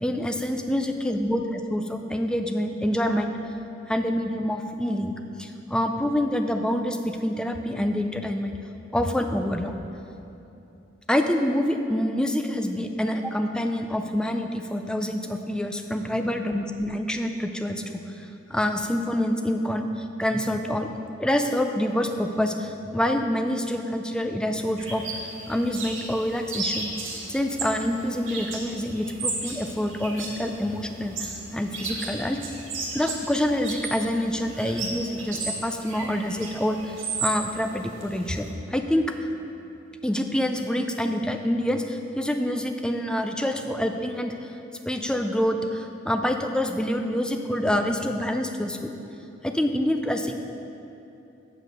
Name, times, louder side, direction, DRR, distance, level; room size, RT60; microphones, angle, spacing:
voice 1, 0.0-3.3 3.9-5.1 5.4-8.5 8.9-9.7 11.1-20.9 21.2-26.9 27.3-32.4 32.9-39.0 40.0-44.5 44.9-48.9 49.4-50.4, left 1 dB, 5° left, 5 dB, 0.3 m, -26 dB
sound 1, 24.8-38.5, right 3 dB, 75° right, 1.5 m, -35 dB
7.7 x 5.3 x 6.4 m, 2.9 s
head